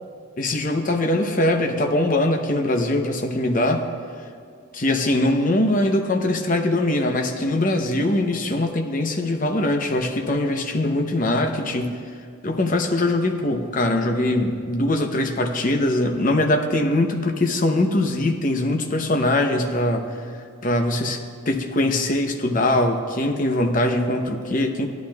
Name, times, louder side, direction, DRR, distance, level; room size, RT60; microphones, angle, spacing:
voice 1, 0.4-3.8 4.7-12.0 12.4-20.1 20.6-24.9, left 1 dB, 40° left, 4 dB, 0.8 m, -22 dB
16.5 x 11.5 x 2.4 m, 2.3 s
head